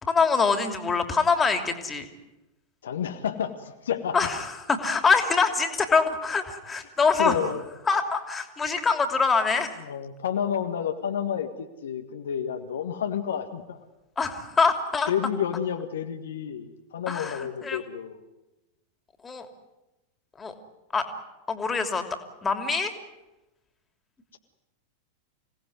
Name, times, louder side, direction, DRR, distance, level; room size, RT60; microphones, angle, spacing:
voice 1, 0.0-2.0 4.1-7.4 7.9-9.7 14.2-15.1 17.1-17.8 19.2-19.5 20.4-20.5 20.9-21.1 21.5-22.0 22.4-22.9, left 5 dB, 15° left, 7 dB, 3.0 m, -24 dB
voice 2, 2.8-4.3 7.2-7.6 9.9-13.8 15.1-18.2, left 8 dB, 65° left, 7 dB, 1.6 m, -30 dB
26.5 x 18.5 x 9.7 m, 1.0 s
figure-of-eight pair, 90°, 0 cm